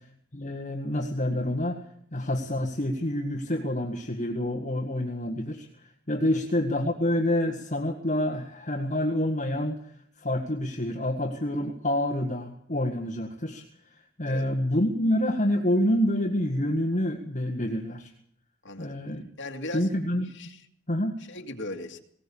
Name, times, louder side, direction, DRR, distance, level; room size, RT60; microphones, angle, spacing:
voice 1, 0.3-1.8 2.1-18.1 18.8-19.2 19.7-20.3 20.9-21.2, left 1 dB, 40° left, 2 dB, 1.7 m, -28 dB
voice 2, 18.6-18.9 19.4-19.9 20.3-20.6 21.3-22.0, left 1 dB, 60° left, 3 dB, 2.2 m, -38 dB
20.0 x 18.5 x 7.1 m, 0.66 s
head